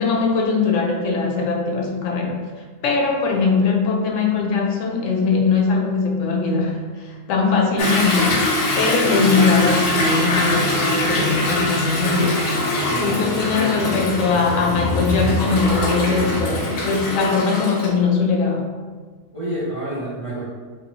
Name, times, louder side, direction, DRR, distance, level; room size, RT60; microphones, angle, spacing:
voice 1, 0.0-2.4 2.8-8.5 8.8-12.4 13.0-18.7, left 4 dB, 80° left, 0 dB, 0.9 m, -20 dB
Toilet flush / Drip / Trickle dribble, 7.8-17.9, left 2 dB, 60° left, 0.7 m, -22 dB
voice 2, 12.9-13.4 19.3-20.4, right 1 dB, 35° right, -8 dB, 0.6 m, -28 dB
3.2 x 2.7 x 3.0 m, 1.5 s
omnidirectional pair, 1.3 m